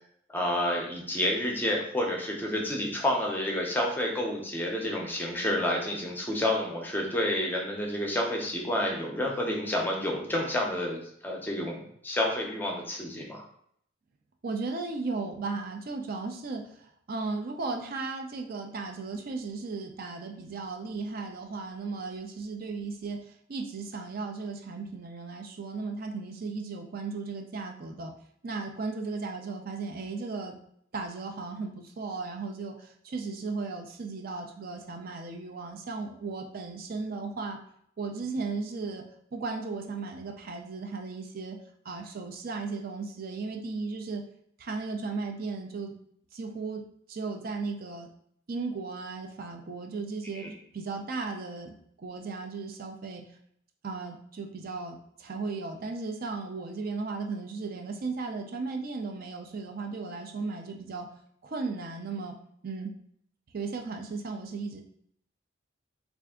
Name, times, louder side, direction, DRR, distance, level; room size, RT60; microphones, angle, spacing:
voice 1, 0.3-11.0 11.2-13.4 50.3-50.5, left 1 dB, 10° left, -1 dB, 0.6 m, -29 dB
voice 2, 14.4-28.1 28.4-30.6 30.9-37.6 38.0-39.0 39.3-41.6 41.8-44.2 44.6-45.9 46.3-46.8 47.1-48.1 48.5-53.2 53.8-61.1 61.4-62.4 62.6-62.9 63.5-64.8, right 4 dB, 50° right, 3 dB, 0.4 m, -36 dB
3.3 x 2.5 x 3.6 m, 0.67 s
head